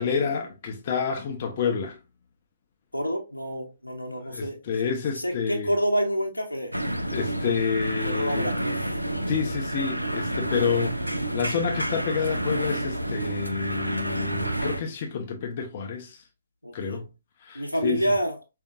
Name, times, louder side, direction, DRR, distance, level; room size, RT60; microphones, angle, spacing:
voice 1, 0.0-2.0 4.3-5.7 7.1-8.5 9.3-16.2 16.7-17.1 17.4-18.0, left 6 dB, 40° left, 0.7 m, -29 dB
voice 2, 2.9-4.6 5.2-6.7 8.0-9.0 11.3-11.8 16.6-17.0 17.5-18.4, equal, 85° left, 0.9 m, -28 dB
sound 1, 6.7-14.8, right 1 dB, 90° right, 0.5 m, -29 dB
5.0 x 2.6 x 2.4 m
figure-of-eight pair, 130°, 0 cm